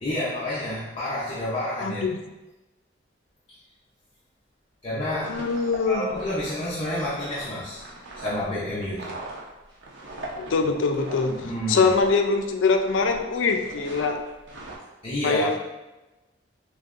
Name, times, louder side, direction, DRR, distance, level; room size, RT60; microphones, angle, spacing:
voice 1, 0.0-2.0 4.8-5.4 5.9-7.9 8.1-9.2 11.4-11.9 15.0-15.4, left 1 dB, 30° left, -8 dB, 0.7 m, -29 dB
voice 2, 1.8-2.2 5.3-6.1 10.3-14.2 15.2-15.6, left 4 dB, 85° left, 4 dB, 0.4 m, -23 dB
sound 1, 4.9-12.4 12.7-13.2 13.5-14.8, right 2 dB, 70° right, 0.8 m, -40 dB
6.2 x 2.2 x 2.5 m, 1.1 s
head